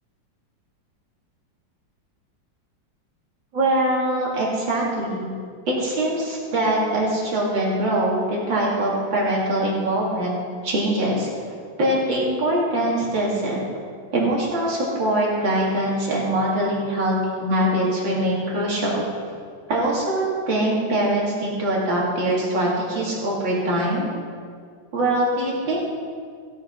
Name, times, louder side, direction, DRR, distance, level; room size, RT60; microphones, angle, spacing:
voice 1, 3.5-5.3 5.7-10.4 10.6-11.3 11.8-13.6 14.1-19.0 19.7-24.1 24.9-25.9, right 1 dB, 80° right, -4 dB, 3.4 m, -23 dB
16.0 x 7.5 x 5.4 m, 2.1 s
omnidirectional pair, 2.1 m